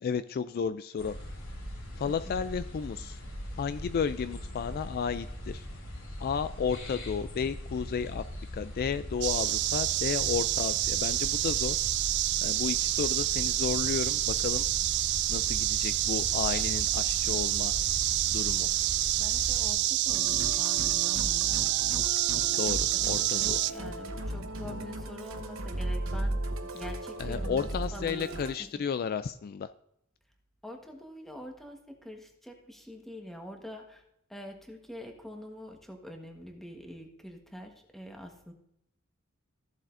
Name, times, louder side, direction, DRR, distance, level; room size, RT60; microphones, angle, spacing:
voice 1, 0.0-1.1 2.0-3.2 3.6-5.7 6.2-8.2 8.5-11.8 12.4-14.7 15.3-17.8 18.3-18.7 22.5-23.6 27.2-29.7, left 6 dB, 45° left, 12 dB, 0.3 m, -33 dB
sound 1, 1.0-19.7, left 1 dB, 70° left, 2.8 m, -40 dB
voice 2, 2.0-2.4 18.7-18.8 19.2-21.5 22.9-23.0 23.3-26.4 26.7-28.3 30.6-34.0 34.3-38.5, equal, ahead, 2 dB, 1.3 m, -45 dB
sound 2, 9.2-23.7, right 16 dB, 55° right, 0.3 m, -28 dB
Musical instrument, 20.1-28.5, right 1 dB, 75° right, 1.0 m, -36 dB
14.5 x 7.5 x 2.6 m, 0.77 s
head